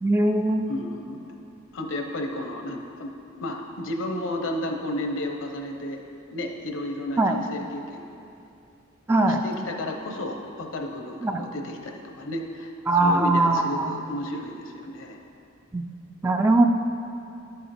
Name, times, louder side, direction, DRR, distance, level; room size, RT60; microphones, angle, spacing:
voice 1, 0.0-0.7 7.2-7.4 9.1-9.4 11.2-11.4 12.9-14.0 15.7-15.8 16.2-16.6, right 2 dB, 10° right, 4 dB, 0.3 m, -21 dB
voice 2, 0.7-1.3 1.7-3.1 3.4-6.0 6.3-8.2 9.3-12.7 13.0-15.2, left 1 dB, 70° left, 3 dB, 0.8 m, -32 dB
11.0 x 5.6 x 4.2 m, 2.6 s
head